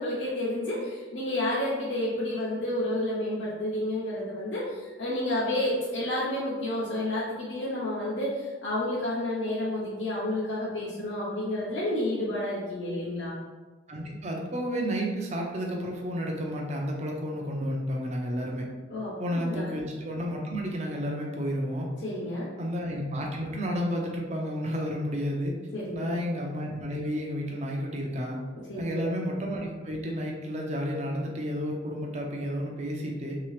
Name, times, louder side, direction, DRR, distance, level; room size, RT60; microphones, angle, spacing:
voice 1, 0.0-13.3 18.9-19.7 22.0-22.5 25.7-26.1 28.7-29.0, left 1 dB, 75° left, -8 dB, 0.7 m, -30 dB
voice 2, 13.9-18.7 19.2-21.9 22.6-25.5 25.9-28.4 28.8-33.4, equal, 35° right, 0 dB, 0.5 m, -31 dB
2.9 x 2.8 x 3.2 m, 1.3 s
head